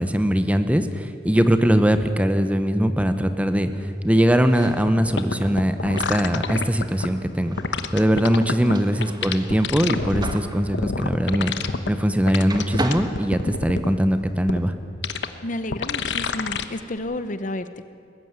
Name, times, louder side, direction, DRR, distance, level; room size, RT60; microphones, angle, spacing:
voice 1, 0.0-14.7, equal, 10° right, 9 dB, 0.9 m, -21 dB
sound 1, 4.4-12.2 12.4-14.1, right 1 dB, 25° right, 1.3 m, -37 dB
sound 2, 4.9-5.0 5.2-7.1 7.6-8.7 9.0-10.4 10.7-11.9 12.3-13.9 14.5-14.6 15.0-15.3 15.7-16.6 17.0-17.1, left 4 dB, 80° left, 1.0 m, -27 dB
voice 2, 15.4-17.9, left 1 dB, 45° left, 11 dB, 0.8 m, -31 dB
20.0 x 14.5 x 9.6 m, 2.4 s
head